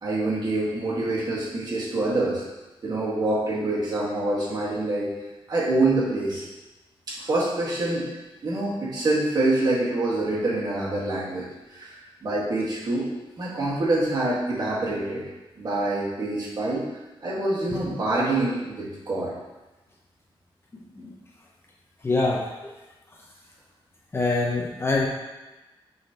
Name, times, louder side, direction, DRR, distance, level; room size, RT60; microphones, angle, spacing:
voice 1, 0.0-2.4 2.8-5.1 5.5-6.4 7.1-8.1 8.4-13.1 13.4-15.2 15.6-16.8 17.2-19.3, right 2 dB, 45° right, -6 dB, 1.7 m, -26 dB
voice 2, 22.0-22.4 24.1-25.1, left 3 dB, 25° left, -3 dB, 0.8 m, -24 dB
8.4 x 4.0 x 3.0 m, 1.1 s
wide cardioid pair, 160°, 10 cm